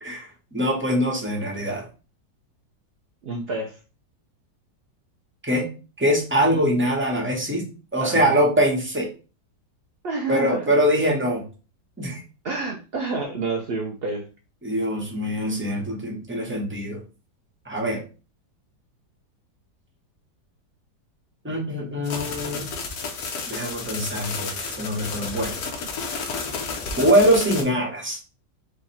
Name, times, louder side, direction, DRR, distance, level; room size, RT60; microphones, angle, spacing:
voice 1, 0.0-1.9 5.4-5.7 6.0-7.6 7.9-9.1 10.3-11.4 12.0-12.2 14.6-17.0 17.6-18.0 21.4-22.7 23.5-25.6 27.0-28.2, equal, 10° right, -1 dB, 0.8 m, -23 dB
voice 2, 3.2-3.8 6.5-6.6 8.0-8.4 10.0-10.6 12.4-14.3, right 3 dB, 80° right, 1 dB, 0.5 m, -29 dB
sound 1, 22.0-27.6, left 4 dB, 60° left, 1.3 m, -32 dB
4.8 x 2.3 x 4.2 m, 0.34 s
omnidirectional pair, 1.9 m